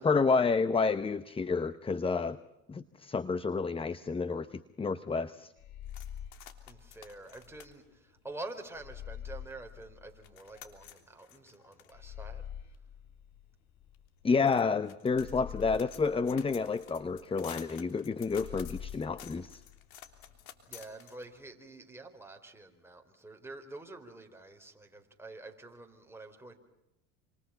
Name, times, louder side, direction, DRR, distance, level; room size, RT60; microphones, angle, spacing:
voice 1, 0.0-2.4 2.7-5.5 14.2-19.6, left 4 dB, 15° left, 14 dB, 0.8 m, -30 dB
sound 1, 5.6-7.7 8.7-10.9 11.9-14.3 15.1-17.2 18.2-20.4, left 9 dB, 40° left, 2.0 m, -46 dB
sound 2, 5.9-9.0 9.5-9.6 9.8-21.5, left 11 dB, 75° left, 3.5 m, -53 dB
voice 2, 6.7-12.5 20.7-26.6, right 2 dB, 5° right, 3 dB, 4.5 m, -47 dB
28.5 x 27.0 x 5.8 m, 0.95 s
hypercardioid pair, 95°, 43 cm